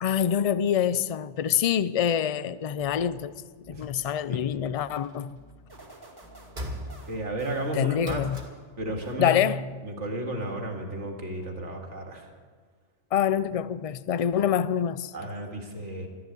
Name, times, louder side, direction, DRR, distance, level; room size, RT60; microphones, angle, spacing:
voice 1, 0.0-3.3 3.7-5.4 7.7-8.4 9.2-9.6 13.1-15.1, left 9 dB, 60° left, 0.3 m, -26 dB
sound 1, 2.8-9.6, left 1 dB, 20° left, 1.8 m, -55 dB
sound 2, 4.8-5.5 6.5-7.3 8.0-8.7 10.5-10.6, equal, 40° right, 2.4 m, -38 dB
sound 3, 5.7-8.7 9.0-9.7, right 2 dB, 20° right, 2.1 m, -52 dB
voice 2, 7.1-8.2 8.8-9.4 9.8-12.3 15.1-16.1, right 1 dB, 80° right, 2.4 m, -33 dB
13.0 x 10.5 x 9.5 m
omnidirectional pair, 1.2 m